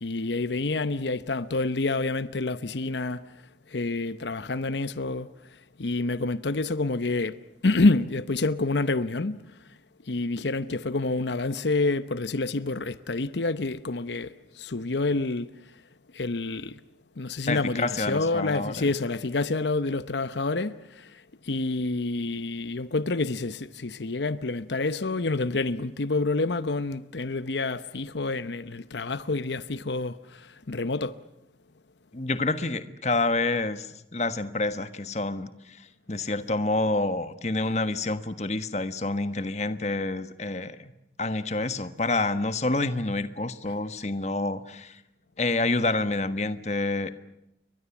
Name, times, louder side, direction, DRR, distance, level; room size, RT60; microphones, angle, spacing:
voice 1, 0.0-3.3 3.7-5.3 5.8-7.4 7.6-9.4 10.1-15.5 16.1-16.8 17.2-31.2, left 3 dB, 85° left, 0.9 m, -28 dB
voice 2, 17.5-18.9 32.1-33.9 34.1-35.8 36.1-40.8 41.2-45.0 45.4-47.1, left 2 dB, 40° left, 1.4 m, -28 dB
30.0 x 23.0 x 7.2 m
head